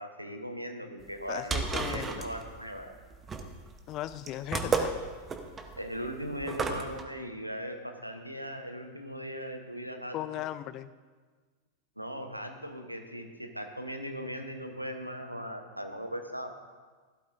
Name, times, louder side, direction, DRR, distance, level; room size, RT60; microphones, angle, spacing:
voice 1, 0.0-2.9 5.8-10.2 12.0-16.5, equal, 90° right, 5 dB, 1.0 m, -39 dB
sound 1, 1.1-7.0, right 4 dB, 20° right, 0.9 m, -33 dB
voice 2, 1.3-2.3 3.9-4.9 10.1-10.9, left 13 dB, 35° left, 14 dB, 0.4 m, -37 dB
16.0 x 12.0 x 2.6 m, 1.4 s
figure-of-eight pair, 90°, 0 cm